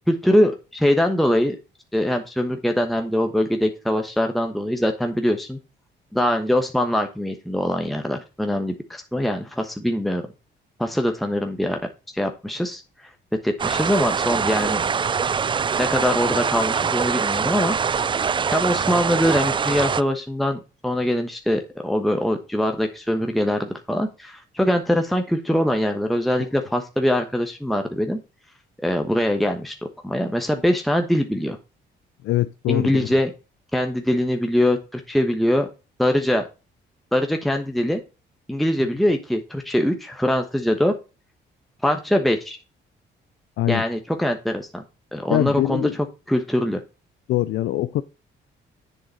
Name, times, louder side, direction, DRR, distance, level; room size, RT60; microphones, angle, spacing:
voice 1, 0.1-1.6 1.9-5.6 6.1-10.2 10.8-11.8 12.1-12.8 13.4-14.8 15.8-17.8 18.5-28.2 28.8-29.7 30.0-31.6 32.7-33.3 33.7-35.7 36.0-36.4 37.1-38.0 38.5-40.9 41.8-42.6 43.7-44.8 45.1-45.9 46.3-46.8, equal, ahead, 1.1 m, -22 dB
sound 1, 13.6-20.0, right 6 dB, 25° right, 0.3 m, -23 dB
voice 2, 32.2-33.1 43.6-43.8 45.3-45.9 47.3-48.0, left 14 dB, 80° left, 0.5 m, -23 dB
7.8 x 6.6 x 4.1 m
cardioid pair, 90°, 20 cm